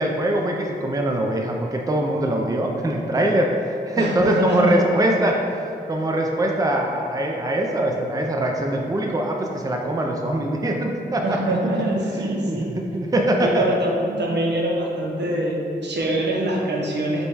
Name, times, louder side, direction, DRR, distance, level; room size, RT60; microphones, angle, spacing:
voice 1, 0.0-3.5 3.9-5.4 5.9-11.4 11.7-13.6, right 1 dB, 20° right, 1 dB, 0.4 m, -23 dB
voice 2, 4.0-4.8 11.2-12.7 13.4-17.2, right 1 dB, 80° right, -1 dB, 0.7 m, -24 dB
5.1 x 2.2 x 4.6 m, 2.6 s
wide cardioid pair, 95°, 18 cm